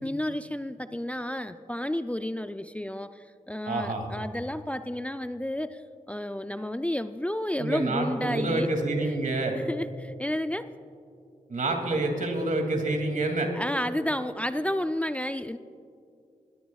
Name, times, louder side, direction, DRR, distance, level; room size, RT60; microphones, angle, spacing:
voice 1, 0.0-5.8 6.1-8.7 9.0-9.1 9.5-10.7 13.5-15.6, left 1 dB, 10° left, 10 dB, 0.5 m, -31 dB
voice 2, 3.6-4.0 7.5-9.6 11.5-13.5, right 2 dB, 65° right, 3 dB, 2.6 m, -27 dB
21.5 x 17.0 x 2.4 m, 2.5 s
cardioid pair, 40°, 14 cm